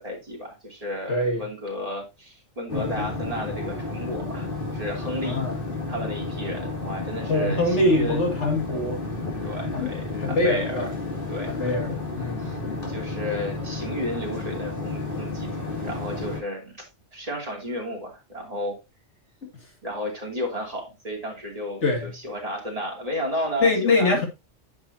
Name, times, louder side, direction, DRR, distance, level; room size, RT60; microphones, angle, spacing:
voice 1, 0.0-5.4 5.9-8.2 9.4-10.8 11.3-12.0 12.4-12.6 12.9-16.9 17.1-18.8 19.8-24.3, left 1 dB, 30° right, 3.0 m, -33 dB
voice 2, 1.1-1.4 2.7-3.1 5.2-5.6 7.3-9.0 9.7-9.9 10.2-10.9 11.5-12.9 19.4-19.5 21.8-22.1 23.6-24.3, left 2 dB, 80° left, 2.5 m, -24 dB
sound 1, 2.7-16.4, left 3 dB, 50° left, 2.8 m, -32 dB
9.6 x 6.1 x 2.8 m
omnidirectional pair, 1.2 m